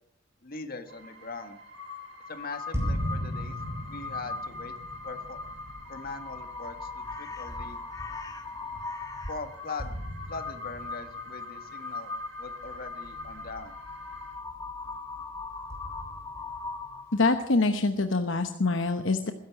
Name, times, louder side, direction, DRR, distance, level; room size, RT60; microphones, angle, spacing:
voice 1, 0.4-1.6 2.3-3.6 3.8-4.7 5.0-5.4 5.9-7.8 9.3-10.0 10.3-12.1 12.4-13.8, left 3 dB, 50° left, 7 dB, 1.7 m, -41 dB
sound 1, 0.9-14.4, right 3 dB, 60° right, 5.8 m, -52 dB
Crow, 1.7-17.2, left 4 dB, 20° left, 1.4 m, -39 dB
sound 2, 2.7-7.5 8.0-8.1 9.8-12.0 12.7-12.8 15.7-17.1, equal, 15° right, 6.6 m, -37 dB
voice 2, 17.1-19.3, left 3 dB, 70° left, 7 dB, 1.0 m, -25 dB
20.5 x 11.0 x 6.0 m, 0.71 s
head